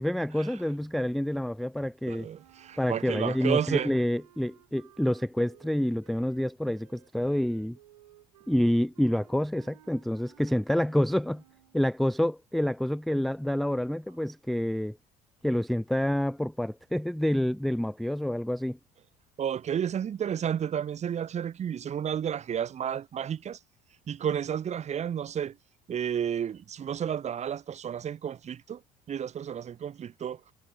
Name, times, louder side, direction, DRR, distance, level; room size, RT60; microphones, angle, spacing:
voice 1, 0.0-2.3 2.8-7.8 8.5-11.4 11.7-15.0 15.4-18.8, left 1 dB, ahead, 0.3 m, -28 dB
voice 2, 2.1-3.9 19.4-23.6 24.1-25.6 25.9-28.8 29.1-30.4, right 8 dB, 35° right, 1.9 m, -31 dB
sound 1, 2.3-11.9, right 14 dB, 70° right, 3.2 m, -59 dB
figure-of-eight pair, 60°, 20 cm